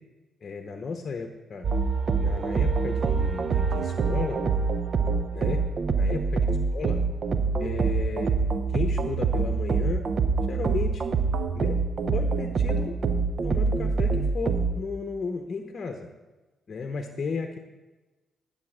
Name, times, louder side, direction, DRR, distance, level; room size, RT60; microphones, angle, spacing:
voice 1, 0.4-1.7 2.2-4.4 5.3-5.6 6.0-6.5 6.7-7.0 7.6-8.3 8.7-10.1 10.5-11.0 11.5-11.8 12.1-13.0 13.4-16.1 16.7-17.6, left 4 dB, 50° left, 5 dB, 0.8 m, -34 dB
sound 1, 1.6-14.8, right 4 dB, 50° right, 0.7 m, -25 dB
11.0 x 4.1 x 7.6 m, 1.2 s
supercardioid pair, 60°, 0 cm